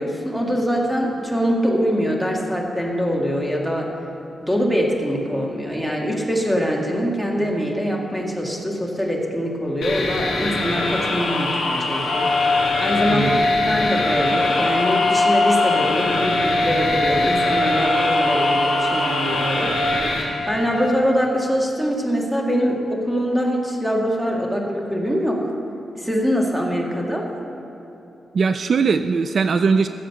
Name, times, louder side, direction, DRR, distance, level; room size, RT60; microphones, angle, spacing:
voice 1, 0.0-3.9 4.4-12.3 12.8-13.3 13.7-19.8 20.5-25.5 26.0-27.3, equal, 5° right, -1 dB, 1.8 m, -23 dB
sound 1, 9.8-20.2, left 2 dB, 75° left, 3.3 m, -24 dB
sound 2, 12.0-20.9, left 2 dB, 60° left, 1.5 m, -22 dB
voice 2, 28.3-29.9, right 5 dB, 55° right, 10 dB, 0.4 m, -20 dB
15.5 x 7.6 x 6.8 m, 2.9 s
wide cardioid pair, 125°, 0 cm